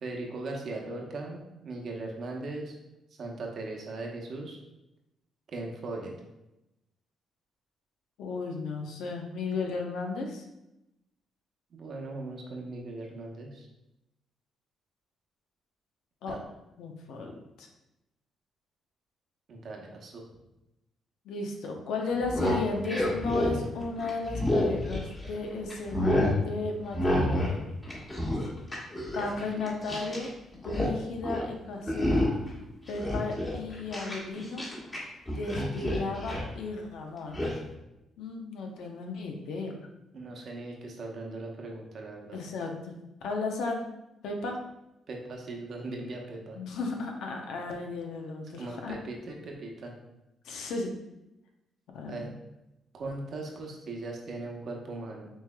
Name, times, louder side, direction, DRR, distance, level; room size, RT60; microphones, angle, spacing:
voice 1, 0.0-2.8 3.2-4.6 5.5-6.1 11.7-13.7 16.3-16.4 19.5-20.2 40.1-42.4 45.1-46.6 48.6-49.9 52.1-52.3 52.9-55.3, right 2 dB, 55° right, 0 dB, 0.9 m, -39 dB
voice 2, 8.2-10.4 16.2-16.4 16.8-17.7 21.2-27.7 29.1-32.3 32.9-34.7 35.3-37.5 38.2-39.8 42.3-42.9 43.2-43.8 44.2-44.6 46.5-48.9 50.4-50.9 51.9-52.3, left 3 dB, 80° left, 2 dB, 0.7 m, -35 dB
sound 1, 22.1-25.4 25.7-26.4 26.9-27.6 27.8-30.3 30.5-30.9 31.2-31.5 31.9-32.5 32.9-35.0 35.3-36.5 37.3-37.5, left 1 dB, 20° left, 1.4 m, -29 dB
6.2 x 3.3 x 2.2 m, 0.92 s
cardioid pair, 90°, 0 cm